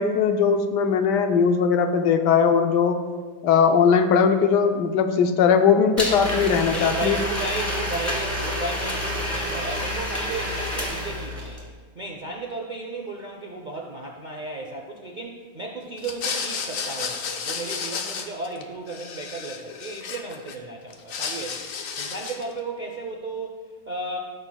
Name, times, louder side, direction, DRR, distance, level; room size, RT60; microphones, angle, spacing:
voice 1, 0.0-3.0 3.4-7.2, left 6 dB, 85° left, 6 dB, 1.3 m, -19 dB
Domestic sounds home sounds, 6.0-11.6, equal, 10° left, 1.6 m, -28 dB
voice 2, 6.7-11.7 12.0-21.7 22.0-24.2, right 2 dB, 60° right, 0 dB, 0.5 m, -34 dB
sound 1, 16.0-18.6 18.9-20.5 20.9-22.5, left 6 dB, 60° left, 1.0 m, -32 dB
14.0 x 6.4 x 2.3 m, 1.5 s
omnidirectional pair, 1.8 m